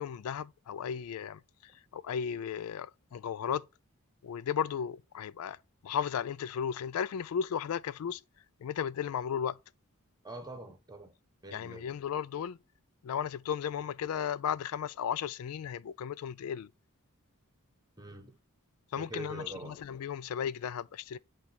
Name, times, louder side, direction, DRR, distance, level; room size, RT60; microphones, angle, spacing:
voice 1, 0.0-3.6 4.2-5.6 5.8-8.2 8.6-9.6 11.5-12.6 13.0-16.7 18.9-21.2, left 8 dB, 75° left, 0.3 m, -35 dB
voice 2, 10.2-11.1 11.4-11.9 18.0-18.4 19.0-19.8, right 1 dB, 20° right, 1.2 m, -44 dB
8.3 x 3.3 x 5.9 m
head